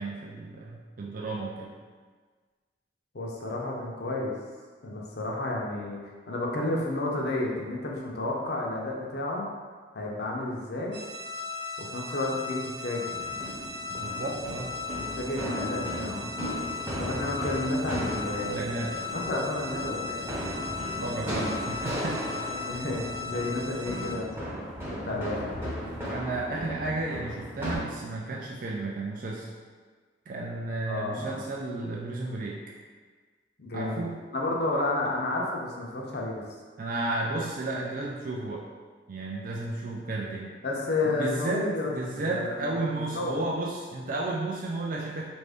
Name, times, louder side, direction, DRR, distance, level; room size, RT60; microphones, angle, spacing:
voice 1, 0.0-1.7 13.9-14.7 18.4-19.0 20.9-22.2 25.1-25.2 26.1-29.5 30.3-32.6 33.7-34.2 36.8-38.7 39.1-40.5 41.0-45.2, right 2 dB, 50° right, -3 dB, 0.4 m, -33 dB
voice 2, 3.1-4.4 4.8-6.0 6.3-9.5 9.9-11.0 11.8-13.3 15.1-16.3 17.0-20.3 22.7-24.5 24.9-25.7 30.9-31.5 33.6-34.1 34.3-36.4 40.6-42.6 43.0-43.4, left 2 dB, 65° left, -2 dB, 0.7 m, -31 dB
sound 1, 10.9-24.2, left 4 dB, 80° right, 0.7 m, -37 dB
sound 2, 13.1-27.8, equal, 15° right, 0.8 m, -36 dB
4.1 x 2.6 x 3.4 m, 1.5 s
head